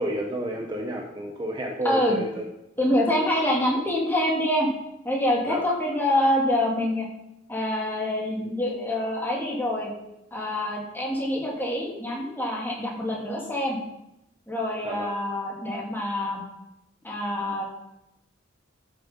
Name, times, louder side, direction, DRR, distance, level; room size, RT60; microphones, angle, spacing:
voice 1, 0.0-2.4 5.5-5.7 14.8-15.1, right 1 dB, 20° right, 1 dB, 1.0 m, -30 dB
voice 2, 1.8-2.2 2.8-4.7 5.0-7.1 7.5-9.9 10.3-13.8 14.5-16.4 17.0-17.6, left 1 dB, 10° left, -3 dB, 3.0 m, -26 dB
13.0 x 7.5 x 5.4 m, 0.88 s
head